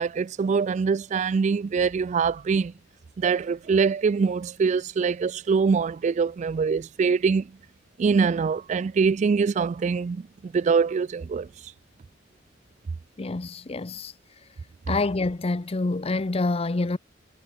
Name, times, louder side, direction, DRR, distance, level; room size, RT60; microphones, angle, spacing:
voice 1, 0.0-2.7 3.2-7.5 8.0-11.5, right 5 dB, 40° right, 0.3 m, -24 dB
sound 1, 1.4-4.2, equal, 10° right, 5.8 m, -61 dB
voice 2, 13.2-14.1 14.9-17.0, left 3 dB, 30° left, 0.6 m, -27 dB
head